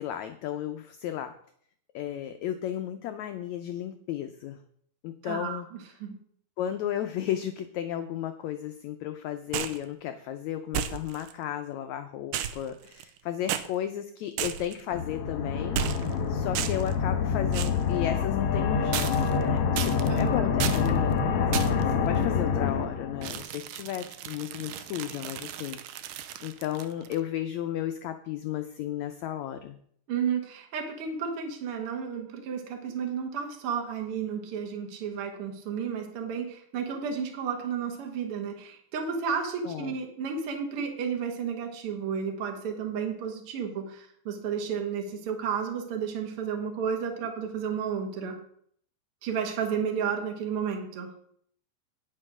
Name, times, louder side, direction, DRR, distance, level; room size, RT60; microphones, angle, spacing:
voice 1, 0.0-1.3 1.9-4.6 5.0-5.7 6.6-25.8 26.4-29.8 39.6-40.0, left 11 dB, 85° left, 8 dB, 1.6 m, -34 dB
voice 2, 5.2-6.2 20.1-20.5 30.1-48.4 49.2-51.1, right 6 dB, 50° right, 3 dB, 1.9 m, -32 dB
sound 1, 9.5-9.8 10.7-11.3 12.3-13.2 13.5-13.7 14.4-14.8 15.7-16.2 16.5-16.9 17.5-17.8 18.9-19.4 19.8-20.2 20.6-20.9 21.5-21.9 23.2-27.2, right 10 dB, 80° right, 2.2 m, -34 dB
sound 2, 14.9-23.4, left 6 dB, 60° left, 1.6 m, -27 dB
9.7 x 6.7 x 6.1 m, 0.63 s
omnidirectional pair, 4.0 m